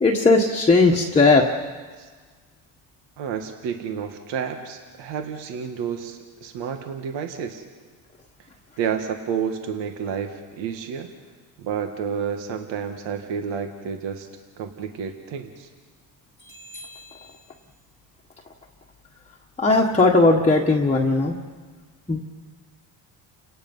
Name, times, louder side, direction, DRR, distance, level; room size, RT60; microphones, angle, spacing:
voice 1, 0.0-1.4 16.7-17.0 19.6-21.3 22.1-22.2, left 3 dB, 15° left, -1 dB, 1.4 m, -17 dB
voice 2, 3.2-7.6 8.8-11.1 11.6-14.3 14.6-15.7, right 7 dB, 70° right, 5 dB, 1.8 m, -30 dB
30.0 x 18.5 x 5.5 m, 1.5 s
cardioid pair, 105°, 45 cm